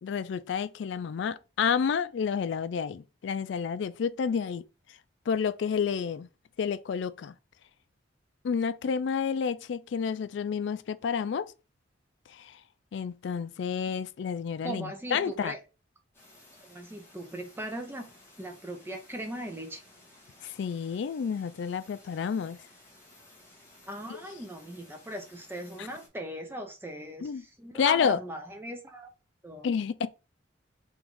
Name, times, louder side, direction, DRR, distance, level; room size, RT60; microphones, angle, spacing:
voice 1, 0.0-4.6 5.3-6.3 6.6-7.3 8.4-11.5 12.3-12.5 12.9-15.5 20.4-22.6 24.1-24.2 25.8-25.9 27.2-27.4 27.7-28.2 29.6-30.1, left 6 dB, 65° left, 0.3 m, -30 dB
voice 2, 14.6-15.6 16.6-18.1 18.4-19.8 23.8-29.1 29.4-29.7, right 1 dB, 10° right, 0.5 m, -39 dB
sound 1, 16.1-26.1, left 1 dB, 15° left, 1.2 m, -56 dB
3.6 x 2.5 x 4.5 m
head